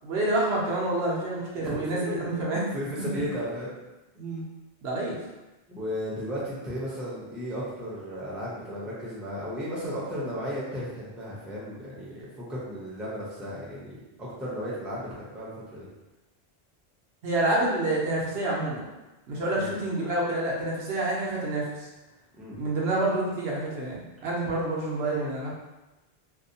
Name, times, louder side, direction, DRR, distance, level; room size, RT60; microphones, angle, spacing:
voice 1, 0.0-2.6 4.2-4.4 4.8-5.2 17.2-18.9 19.3-21.9 22.5-25.5, right 2 dB, 80° right, -4 dB, 0.9 m, -28 dB
voice 2, 1.6-2.4 2.7-3.7 5.7-15.9 19.5-19.7 22.3-22.5, equal, ahead, -7 dB, 0.5 m, -35 dB
2.7 x 2.1 x 2.6 m, 1.0 s
omnidirectional pair, 1.0 m